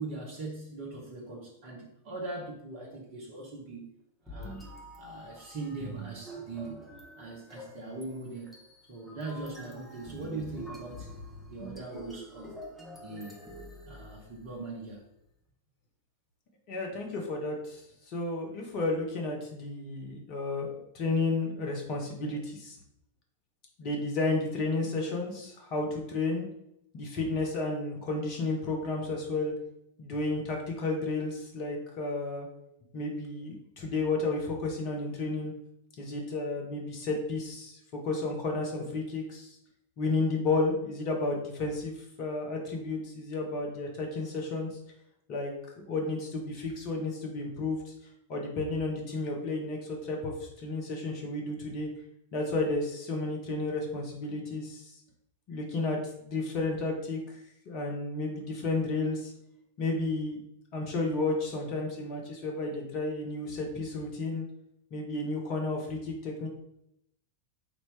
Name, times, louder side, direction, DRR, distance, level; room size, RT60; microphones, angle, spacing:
voice 1, 0.0-3.9 4.2-4.6 5.0-6.8 7.2-8.6 8.9-11.1 11.5-12.6 13.0-13.4 13.9-15.1, right 3 dB, 45° right, -1 dB, 1.2 m, -40 dB
sound 1, 4.3-14.6, right 1 dB, 5° left, 1.3 m, -46 dB
voice 2, 16.7-22.8 23.8-26.5 26.9-29.5 30.0-32.5 32.9-35.5 36.0-37.8 38.0-39.6 40.0-44.8 45.3-45.5 45.8-47.9 48.3-51.9 52.3-55.0 55.5-57.4 57.6-59.3 59.8-60.4 60.7-64.4 64.9-66.5, left 3 dB, 45° left, 0 dB, 1.3 m, -32 dB
5.1 x 2.9 x 3.5 m, 0.78 s
figure-of-eight pair, 90°, 0 cm